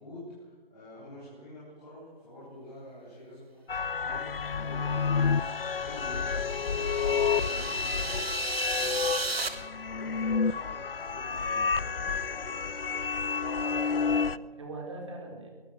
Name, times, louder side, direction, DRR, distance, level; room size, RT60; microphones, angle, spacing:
voice 1, 0.0-6.3 6.6-9.0 9.5-12.5, left 1 dB, ahead, -17 dB, 1.0 m, -47 dB
sound 1, 3.7-14.4, left 5 dB, 65° left, 0.8 m, -30 dB
sound 2, 5.3-9.5, right 3 dB, 80° right, 3.0 m, -36 dB
voice 2, 13.4-15.5, right 2 dB, 30° right, 1 dB, 4.5 m, -42 dB
23.0 x 17.5 x 6.5 m, 1.4 s
hypercardioid pair, 180°, 30 cm